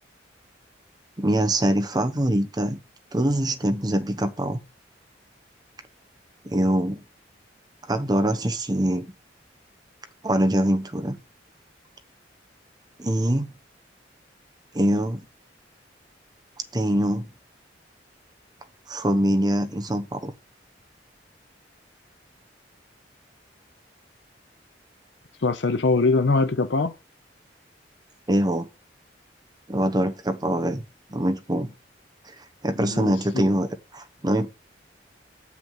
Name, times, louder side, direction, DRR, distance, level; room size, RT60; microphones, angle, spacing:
voice 1, 1.2-2.8 3.1-4.6 6.4-7.0 7.9-9.1 10.2-11.2 13.0-13.5 14.7-15.3 16.7-17.3 18.9-20.3 28.3-28.7 29.7-30.8 31.1-31.7 32.6-33.7 33.9-34.5, right 1 dB, 20° right, 0.9 m, -23 dB
voice 2, 25.4-26.9 32.9-33.4, left 3 dB, 70° left, 0.6 m, -22 dB
7.2 x 6.0 x 5.4 m
head